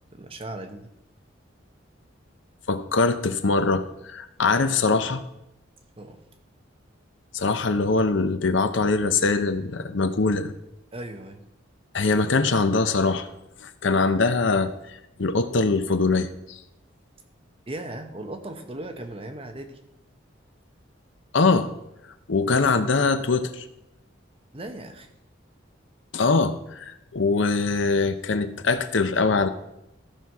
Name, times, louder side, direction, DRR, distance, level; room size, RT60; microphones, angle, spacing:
voice 1, 0.1-0.9 6.0-6.2 10.9-11.4 17.7-19.8 24.5-25.1, right 1 dB, 30° right, 5 dB, 0.9 m, -37 dB
voice 2, 2.7-5.3 7.3-10.5 11.9-13.3 13.6-14.7 15.2-16.6 21.3-21.7 22.3-23.6 26.1-29.5, left 3 dB, 70° left, 10 dB, 0.7 m, -22 dB
14.0 x 5.8 x 4.7 m, 0.86 s
head